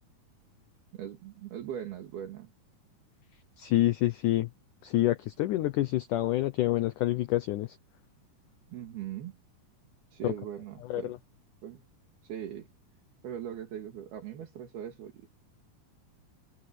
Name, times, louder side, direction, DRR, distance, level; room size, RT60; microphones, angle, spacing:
voice 1, 0.9-2.5 8.7-9.4 10.1-11.2 11.6-11.8 12.2-12.7 13.2-15.3, right 10 dB, 75° right, 4.2 m, -40 dB
voice 2, 3.6-4.5 4.8-7.7 10.2-10.3 10.9-11.0, left 15 dB, 75° left, 1.9 m, -27 dB
omnidirectional pair, 4.6 m